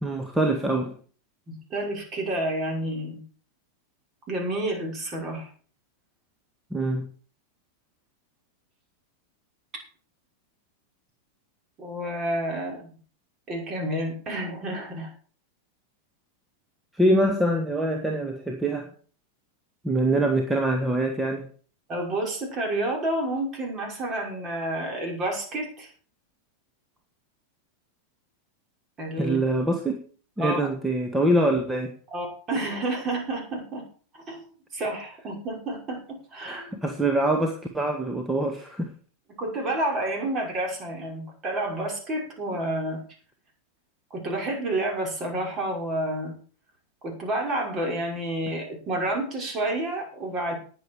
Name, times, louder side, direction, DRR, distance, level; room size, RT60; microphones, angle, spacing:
voice 1, 0.0-0.9 6.7-7.1 16.9-18.9 19.8-21.5 29.2-30.0 30.4-31.9 36.4-38.9, right 1 dB, 5° right, 3 dB, 1.7 m, -24 dB
voice 2, 1.5-3.2 4.3-5.5 11.8-13.0 13.5-15.1 21.9-25.9 29.0-29.4 30.4-30.7 32.1-33.8 34.1-34.5 34.7-36.8 39.4-43.0 44.1-46.4 47.0-50.5, right 1 dB, 30° right, 0 dB, 5.9 m, -29 dB
19.5 x 7.2 x 4.7 m, 0.42 s
figure-of-eight pair, 90°, 0 cm